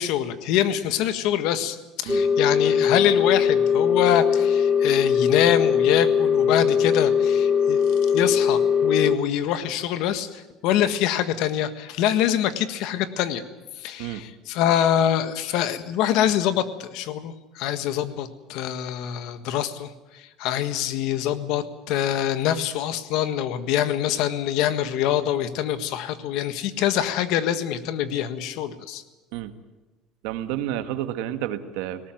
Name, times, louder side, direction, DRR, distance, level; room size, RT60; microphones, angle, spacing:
voice 1, 0.0-7.8 8.1-13.4 13.8-29.0, left 10 dB, 65° left, 11 dB, 1.6 m, -25 dB
sound 1, 2.1-9.2, left 7 dB, 10° left, 1.7 m, -20 dB
voice 2, 30.2-32.0, right 12 dB, 80° right, 9 dB, 1.6 m, -30 dB
19.5 x 18.0 x 9.1 m, 1.1 s
cardioid pair, 145°, 0 cm